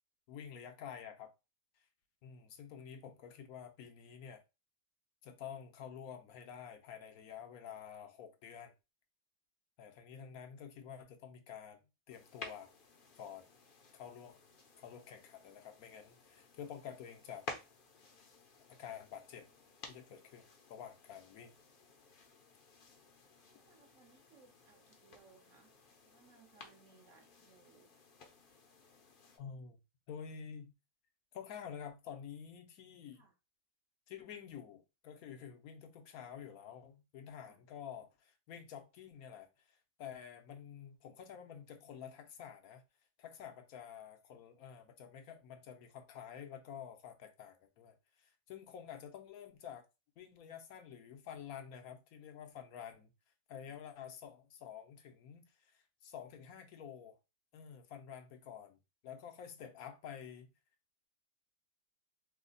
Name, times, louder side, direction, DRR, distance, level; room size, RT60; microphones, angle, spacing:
voice 1, 0.3-1.3 2.2-4.4 5.2-8.7 9.8-11.8 12.1-12.7 13.2-13.4 13.9-14.4 14.8-17.4 18.8-19.5 19.9-21.5 29.3-29.8 30.1-30.7 31.3-33.3 34.1-42.8 43.2-49.9 50.2-53.1 53.5-57.2 57.5-58.8 59.0-60.5, left 8 dB, 80° left, 1.2 m, -49 dB
sound 1, 12.1-29.4, left 3 dB, 50° left, 0.7 m, -55 dB
voice 2, 23.1-25.7 26.0-27.9 33.1-33.3 37.4-37.6 53.6-53.8, right 4 dB, 65° right, 1.1 m, -65 dB
3.1 x 2.1 x 3.8 m
omnidirectional pair, 1.5 m